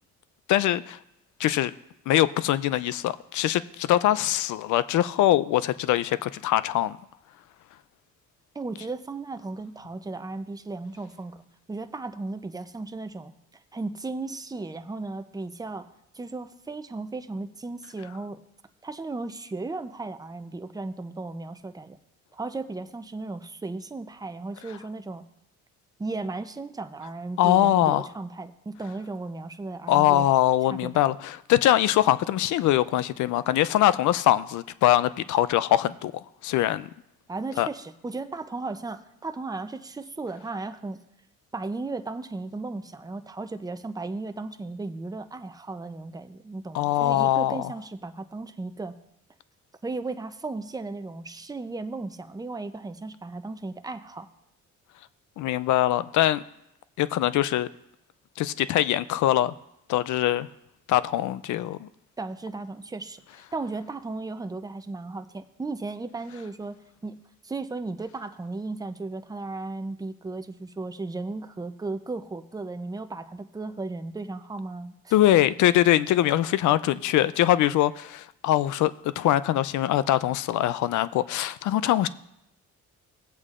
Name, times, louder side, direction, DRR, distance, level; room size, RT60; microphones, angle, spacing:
voice 1, 0.5-1.0 1.4-1.7 2.1-7.0 27.4-28.1 29.9-36.1 36.4-36.9 37.6-37.7 46.7-47.7 55.4-56.4 57.0-57.7 58.4-59.5 59.9-60.5 60.9-61.9 75.1-78.9 79.2-82.1, left 13 dB, 75° left, 0.5 m, -22 dB
voice 2, 8.5-11.4 11.7-13.3 13.7-15.9 16.1-18.4 18.8-22.0 22.3-25.2 26.0-30.3 30.7-31.1 37.3-41.0 41.5-48.9 49.8-54.3 62.2-75.1, right 3 dB, 15° right, 0.6 m, -35 dB
17.5 x 8.2 x 2.5 m
cardioid pair, 90°, 30 cm